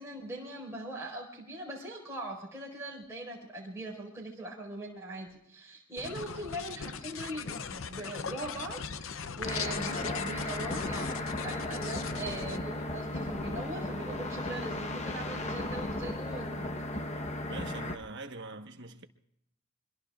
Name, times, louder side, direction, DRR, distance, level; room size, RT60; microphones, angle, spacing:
voice 1, 0.0-16.8, right 1 dB, 10° right, 5.0 m, -41 dB
sound 1, 6.0-12.6, left 6 dB, 65° left, 0.7 m, -39 dB
sound 2, 9.4-18.0, left 1 dB, 30° left, 1.1 m, -35 dB
voice 2, 17.5-19.0, right 3 dB, 55° right, 1.3 m, -43 dB
25.0 x 22.5 x 2.5 m
head